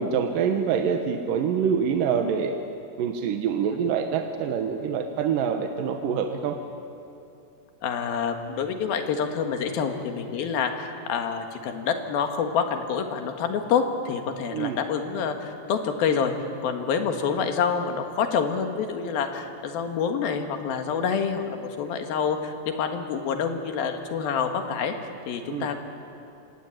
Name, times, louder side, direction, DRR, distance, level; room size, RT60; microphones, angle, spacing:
voice 1, 0.0-2.5 3.0-6.6 14.5-14.8 25.5-25.7, right 7 dB, 70° right, 5 dB, 2.6 m, -25 dB
voice 2, 7.8-16.3 16.6-24.9 25.3-25.8, left 6 dB, 75° left, 5 dB, 3.4 m, -27 dB
26.0 x 19.5 x 8.9 m, 2.7 s
omnidirectional pair, 4.4 m